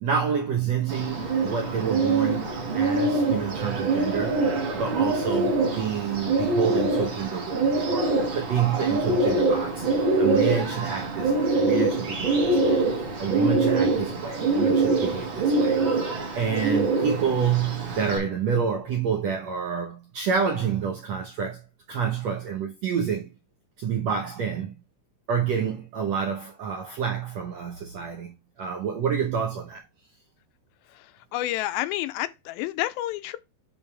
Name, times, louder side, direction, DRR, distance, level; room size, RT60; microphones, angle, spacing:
voice 1, 0.0-4.5 4.7-9.9 10.2-12.3 12.6-12.8 13.2-15.8 16.3-21.6 21.9-23.3 23.8-24.7 25.3-29.8, right 7 dB, 75° right, 1.6 m, -28 dB
Bird, 0.9-18.2, right 3 dB, 45° right, 1.8 m, -24 dB
voice 2, 31.3-33.4, left 15 dB, 80° left, 2.4 m, -29 dB
10.5 x 4.1 x 3.3 m
omnidirectional pair, 4.3 m